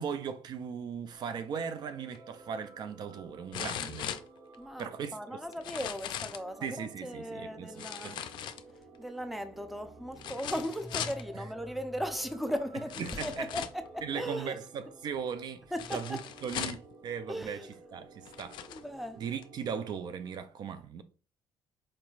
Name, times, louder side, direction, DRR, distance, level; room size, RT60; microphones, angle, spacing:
voice 1, 0.0-4.1 4.8-5.4 6.6-8.3 13.0-13.5 14.0-15.6 15.9-18.6 19.2-21.0, right 7 dB, 55° right, 0.4 m, -38 dB
sound 1, 1.0-20.3, right 3 dB, 40° right, 0.8 m, -54 dB
sound 2, 2.1-2.2 3.5-4.8 5.5-6.5 7.8-9.0 10.2-11.2 12.2-12.3 12.9-13.9 15.8-16.9 17.7-17.8 18.2-18.8 19.4-19.5, left 10 dB, 65° left, 0.4 m, -39 dB
voice 2, 4.6-8.2 9.0-14.6 15.7-16.2 17.3-17.7 18.7-19.2, equal, ahead, 0.6 m, -37 dB
4.4 x 3.0 x 2.4 m
cardioid pair, 90°, 8 cm